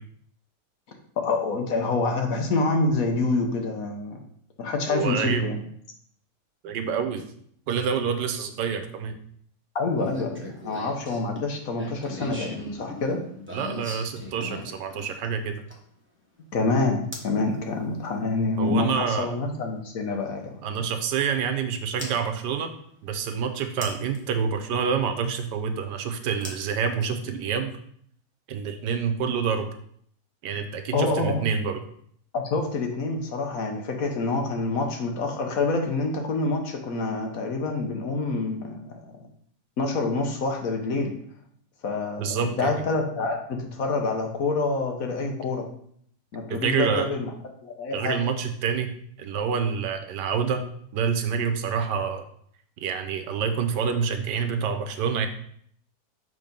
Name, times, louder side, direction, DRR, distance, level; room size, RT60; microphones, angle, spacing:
voice 1, 1.2-4.2 4.6-5.6 9.7-13.2 16.5-20.6 30.9-31.5 32.3-39.2 39.8-41.1 41.8-45.6 46.3-47.3 47.6-48.2, left 3 dB, 60° left, 3 dB, 1.3 m, -27 dB
voice 2, 4.9-5.5 6.6-7.2 7.7-9.2 13.5-15.5 18.6-19.3 20.6-22.7 23.0-27.7 28.5-29.7 30.4-31.8 42.2-42.7 46.5-47.1 47.9-48.9 49.2-50.7 50.9-52.2 52.8-55.3, right 6 dB, 80° right, 7 dB, 1.3 m, -27 dB
sound 1, 10.0-16.0 17.1-17.4 19.3-19.4 22.0-22.1 23.8-24.2 26.4-27.4, left 1 dB, 10° right, 0.9 m, -38 dB
6.7 x 3.5 x 5.2 m, 0.64 s
omnidirectional pair, 1.8 m